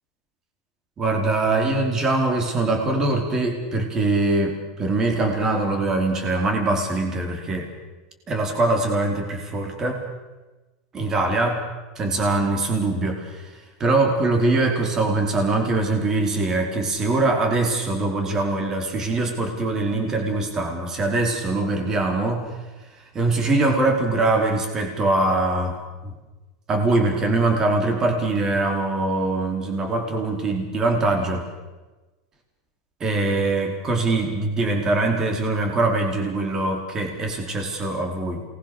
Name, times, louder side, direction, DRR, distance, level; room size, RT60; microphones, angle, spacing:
voice 1, 1.0-7.7 8.3-10.0 10.9-11.6 11.9-13.5 13.8-22.5 23.1-26.1 26.7-31.5 33.0-38.4, right 2 dB, 25° right, 4 dB, 4.8 m, -23 dB
28.5 x 21.0 x 7.0 m, 1.2 s
supercardioid pair, 135°, 2 cm